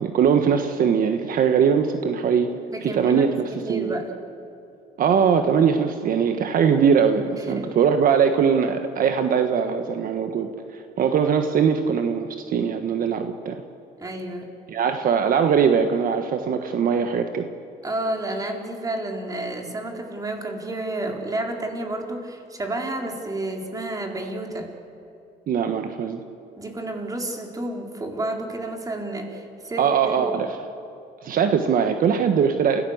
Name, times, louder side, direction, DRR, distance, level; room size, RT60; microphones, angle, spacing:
voice 1, 0.0-2.5 2.8-3.3 3.7-3.9 5.0-13.6 14.7-17.5 25.5-26.2 29.8-30.5 31.2-32.8, right 7 dB, 55° right, 7 dB, 1.4 m, -21 dB
voice 2, 2.7-3.2 3.5-4.1 7.4-7.8 14.0-14.5 17.8-24.7 26.6-30.3, right 1 dB, 20° right, 2 dB, 3.9 m, -30 dB
29.5 x 16.5 x 8.0 m, 2.8 s
cardioid pair, 110°, 17 cm